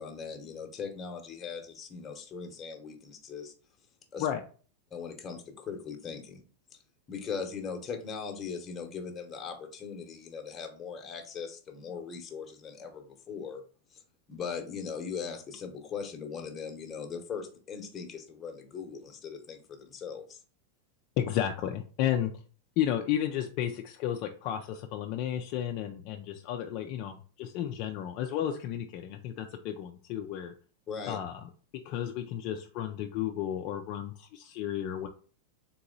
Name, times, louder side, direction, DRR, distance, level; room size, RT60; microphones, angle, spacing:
voice 1, 0.0-3.5 4.1-4.3 4.9-6.4 7.1-13.6 13.9-14.0 14.3-20.4 30.9-31.2, left 6 dB, 25° left, 4 dB, 1.0 m, -39 dB
voice 2, 21.2-22.3 22.8-30.5 31.1-31.3 31.8-35.1, left 10 dB, 50° left, 4 dB, 0.5 m, -32 dB
3.7 x 2.9 x 3.9 m, 0.40 s
hypercardioid pair, 120°, 0 cm